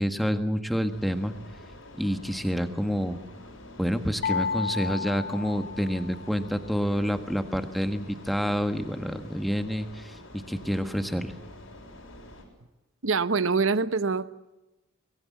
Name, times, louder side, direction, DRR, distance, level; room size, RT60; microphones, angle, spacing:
voice 1, 0.0-1.3 2.0-3.2 3.8-10.1 10.5-11.3, equal, ahead, 8 dB, 1.5 m, -28 dB
sound 1, 0.9-12.4, left 1 dB, 80° left, 6.6 m, -47 dB
sound 2, 4.2-6.4, left 5 dB, 45° left, 0.8 m, -32 dB
voice 2, 13.0-14.3, right 4 dB, 70° right, 14 dB, 0.9 m, -24 dB
24.5 x 21.0 x 7.3 m, 1.0 s
head